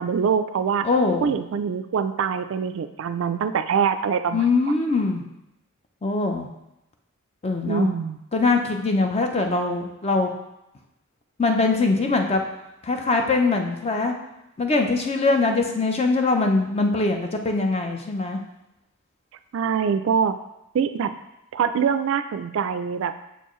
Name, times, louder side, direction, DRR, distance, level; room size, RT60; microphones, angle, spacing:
voice 1, 0.0-0.9 1.2-4.4 7.7-8.2 19.5-20.4 20.7-21.1 21.5-23.2, right 6 dB, 60° right, 10 dB, 0.3 m, -24 dB
voice 2, 0.8-1.3 4.3-5.2 6.0-6.5 7.4-7.9 8.3-10.3 11.4-12.4 12.8-14.1 14.6-18.4, left 3 dB, 30° left, 4 dB, 0.5 m, -22 dB
6.8 x 4.5 x 3.1 m, 0.89 s
head